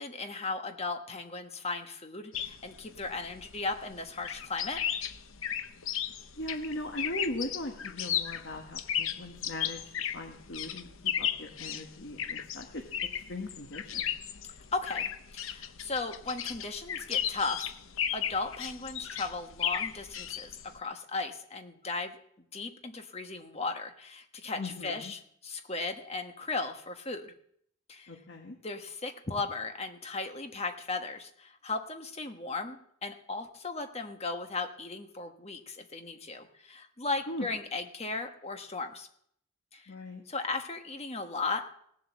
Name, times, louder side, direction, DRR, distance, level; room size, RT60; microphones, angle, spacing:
voice 1, 0.0-4.8 14.7-17.7 18.1-22.2 22.5-27.3 27.9-28.2 28.6-39.1 39.7-39.9 40.3-41.8, left 3 dB, 30° left, 6 dB, 1.3 m, -36 dB
sound 1, 2.3-20.8, left 9 dB, 80° left, 0.8 m, -35 dB
voice 2, 6.4-12.8 13.3-14.1 24.6-25.1 28.1-28.5 37.3-37.5 39.9-40.2, left 1 dB, 60° left, 2 dB, 1.5 m, -39 dB
17.5 x 7.8 x 7.3 m, 0.69 s
head